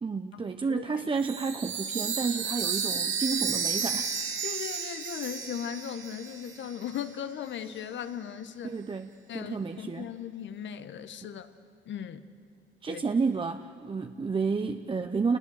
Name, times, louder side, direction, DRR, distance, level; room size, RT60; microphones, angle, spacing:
voice 1, 0.0-4.2 8.6-10.1 12.8-15.4, right 4 dB, 25° right, 7 dB, 0.8 m, -31 dB
voice 2, 0.7-1.1 4.4-8.8 9.3-11.5 11.8-12.3 12.9-13.0, left 9 dB, 70° left, 10 dB, 1.3 m, -38 dB
Chime, 1.2-6.7, right 6 dB, 85° right, 3.9 m, -32 dB
28.0 x 20.0 x 8.0 m, 2.5 s
cardioid pair, 90°, 20 cm